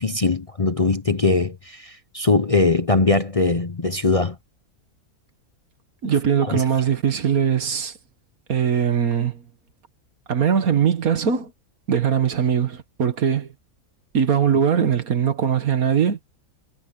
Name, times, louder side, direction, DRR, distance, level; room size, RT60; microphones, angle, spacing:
voice 1, 0.0-4.4 6.4-6.6, left 3 dB, 30° left, 0.7 m, -21 dB
voice 2, 6.0-8.0 8.5-9.5 10.3-11.5 11.9-13.5 14.1-16.2, right 7 dB, 75° right, 2.0 m, -21 dB
omnidirectional pair, 1.5 m